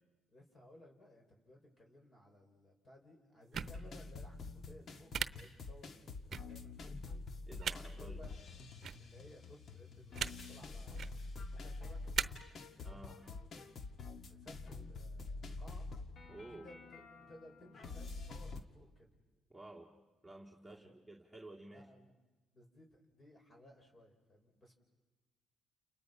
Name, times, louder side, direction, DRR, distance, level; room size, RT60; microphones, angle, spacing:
voice 1, 0.3-7.0 7.9-8.3 9.0-12.2 12.5-13.7 14.1-15.9 16.3-19.1 20.7-20.9 21.6-22.1 22.5-24.7, left 1 dB, 35° left, 2 dB, 6.2 m, -60 dB
sound 1, 3.5-18.6, left 3 dB, 60° left, 1.8 m, -47 dB
sound 2, 3.5-3.7 5.1-5.3 6.3-6.4 7.6-7.8 8.8-9.0 10.1-10.3 10.9-11.1 12.1-12.2, right 8 dB, 60° right, 0.8 m, -36 dB
voice 2, 7.5-8.2 12.8-13.2 16.3-16.7 19.5-19.9 20.2-21.9, right 2 dB, ahead, -3 dB, 2.4 m, -52 dB
30.0 x 30.0 x 5.7 m, 1.2 s
cardioid pair, 90°, 0 cm